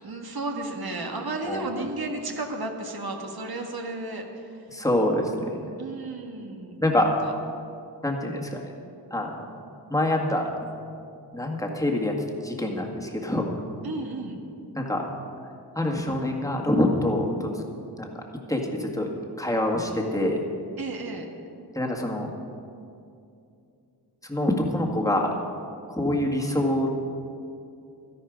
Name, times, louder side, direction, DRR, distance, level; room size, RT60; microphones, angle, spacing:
voice 1, 0.0-4.2 5.8-6.7 7.2-7.3 13.8-14.4 20.8-21.3, right 2 dB, 60° right, 3 dB, 1.6 m, -33 dB
voice 2, 4.7-5.7 6.8-7.1 8.0-8.7 9.1-9.5 9.9-10.5 11.3-12.1 12.4-13.6 14.8-15.0 15.8-17.6 18.0-18.1 18.5-19.1 19.4-20.4 21.7-22.3 24.2-25.3 25.9-26.9, left 1 dB, 10° left, 0 dB, 1.8 m, -25 dB
12.5 x 11.0 x 5.1 m, 2.6 s
cardioid pair, 60°, 42 cm